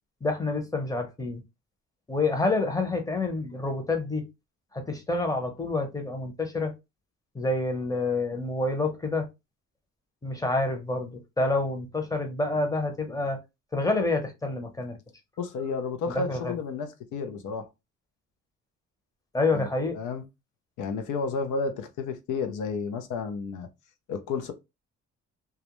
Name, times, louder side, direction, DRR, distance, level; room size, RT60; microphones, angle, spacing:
voice 1, 0.2-1.4 2.1-4.3 4.7-6.7 7.3-9.3 10.2-13.4 13.7-15.0 16.1-16.5 19.3-20.0, left 2 dB, 10° left, 0.7 m, -28 dB
voice 2, 15.4-17.7 19.5-19.7 19.9-20.2 20.8-23.7 24.1-24.5, left 4 dB, 80° left, 0.6 m, -31 dB
2.3 x 2.1 x 2.9 m
cardioid pair, 90°, 30 cm